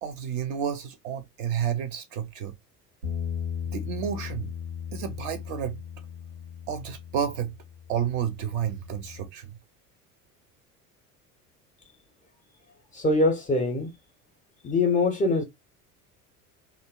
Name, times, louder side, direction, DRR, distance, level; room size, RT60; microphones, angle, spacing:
voice 1, 0.0-2.5 3.7-4.5 4.9-5.8 6.7-7.6 7.9-9.6, right 8 dB, 45° right, 0.5 m, -31 dB
Bass guitar, 3.0-9.3, left 8 dB, 90° right, 0.9 m, -37 dB
voice 2, 12.9-13.9 14.6-15.4, left 2 dB, 20° left, 0.5 m, -23 dB
2.7 x 2.1 x 2.2 m
figure-of-eight pair, 65°, 45 cm